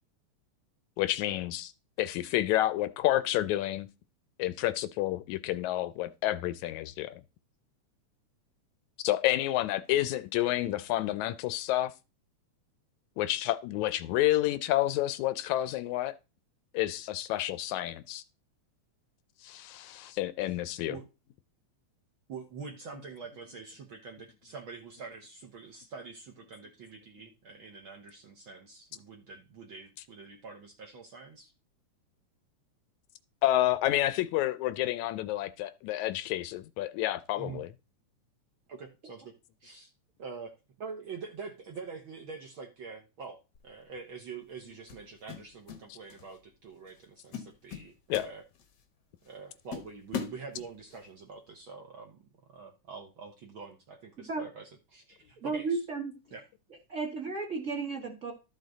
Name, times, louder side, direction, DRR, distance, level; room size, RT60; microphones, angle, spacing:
voice 1, 1.0-1.7 2.0-3.9 4.4-7.2 9.0-11.9 13.2-16.1 16.7-18.2 19.4-21.0 33.4-37.7 48.1-48.3, left 14 dB, 80° left, 1.9 m, -29 dB
voice 2, 22.3-31.5 37.3-37.6 38.7-39.3 39.6-39.9 40.2-43.4 43.6-48.4 49.2-55.8 56.3-56.4, right 5 dB, 55° right, 1.5 m, -45 dB
sound 1, 43.5-43.8 44.9-45.8 46.1-46.4 46.9-47.0 47.3-48.8 49.2-49.3 49.7-51.0, left 7 dB, 55° left, 1.2 m, -40 dB
voice 3, 55.4-56.1 56.9-58.3, right 4 dB, 30° right, 1.8 m, -33 dB
12.5 x 6.4 x 4.0 m
omnidirectional pair, 3.4 m